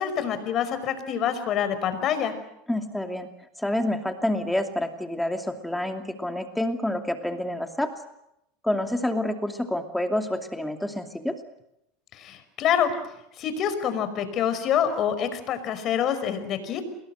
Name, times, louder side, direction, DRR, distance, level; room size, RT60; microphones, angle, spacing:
voice 1, 0.0-2.4 12.1-12.9 13.4-16.8, left 8 dB, 45° left, 11 dB, 5.3 m, -26 dB
voice 2, 2.7-3.3 3.6-7.9 8.6-11.4, left 1 dB, 5° left, 5 dB, 2.6 m, -28 dB
29.0 x 21.5 x 7.8 m, 0.83 s
supercardioid pair, 110°, 0 cm